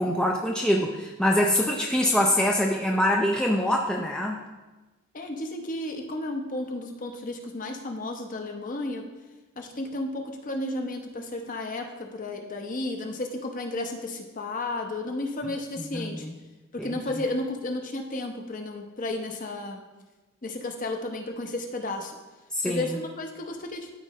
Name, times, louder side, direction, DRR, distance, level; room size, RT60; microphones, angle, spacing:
voice 1, 0.0-4.4 15.8-16.3 16.8-17.0 22.5-22.9, left 1 dB, 5° left, -1 dB, 0.4 m, -24 dB
voice 2, 5.1-9.1 9.6-16.3 16.7-19.8 20.4-22.2 22.6-23.9, left 2 dB, 35° left, 3 dB, 0.8 m, -33 dB
13.0 x 4.7 x 3.0 m, 1.2 s
head